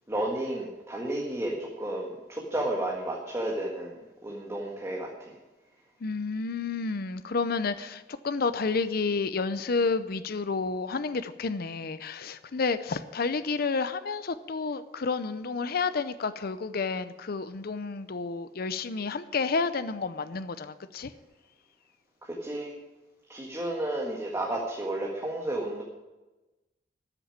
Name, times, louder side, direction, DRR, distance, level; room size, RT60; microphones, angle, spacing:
voice 1, 0.1-4.0 4.2-5.3 22.2-22.7 23.3-25.8, right 1 dB, 15° right, -2 dB, 1.8 m, -32 dB
voice 2, 6.0-21.1, left 4 dB, 55° left, 12 dB, 0.6 m, -30 dB
13.5 x 7.2 x 8.8 m, 1.1 s
head